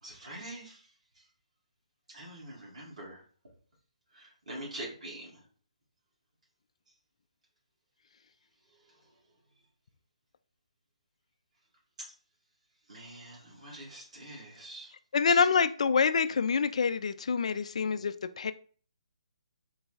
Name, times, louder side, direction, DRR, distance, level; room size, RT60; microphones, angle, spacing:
voice 1, 0.0-0.9 1.2-1.3 2.1-3.2 4.1-5.3 12.0-12.1 12.9-14.9 15.3-15.5, right 1 dB, 70° right, 1.9 m, -44 dB
voice 2, 15.1-18.5, left 5 dB, 60° left, 0.3 m, -26 dB
3.9 x 2.3 x 4.0 m
figure-of-eight pair, 145°, 4 cm